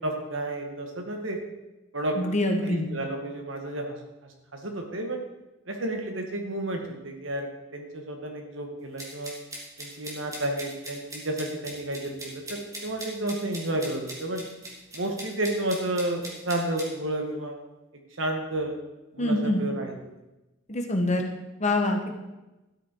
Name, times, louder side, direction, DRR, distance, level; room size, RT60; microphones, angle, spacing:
voice 1, 0.0-1.4 1.9-2.2 2.6-4.0 4.5-5.2 5.7-9.3 9.8-14.4 14.9-17.5 18.2-18.7 19.1-20.2, right 1 dB, 70° right, 3 dB, 2.0 m, -31 dB
voice 2, 2.2-2.9 19.2-19.6 20.7-21.3 21.6-22.1, left 1 dB, 35° left, 3 dB, 1.5 m, -25 dB
sound 1, 9.0-16.9, right 1 dB, 15° right, 3.0 m, -40 dB
12.5 x 9.7 x 4.8 m, 1.0 s
head